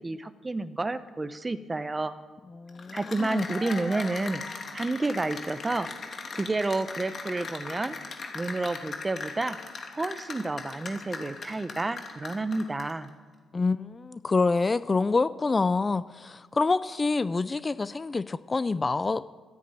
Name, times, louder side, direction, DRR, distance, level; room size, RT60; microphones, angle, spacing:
voice 1, 0.0-2.1 2.9-4.4 4.7-5.9 6.3-8.0 8.3-9.6 9.9-13.1, right 2 dB, 20° right, 13 dB, 1.0 m, -30 dB
voice 2, 2.5-3.5 13.5-19.2, left 3 dB, 25° left, 15 dB, 0.5 m, -27 dB
Cheering / Applause, 2.7-13.1, left 4 dB, 45° left, 2.6 m, -39 dB
13.5 x 10.0 x 8.9 m, 1.5 s
cardioid pair, 90°, 0 cm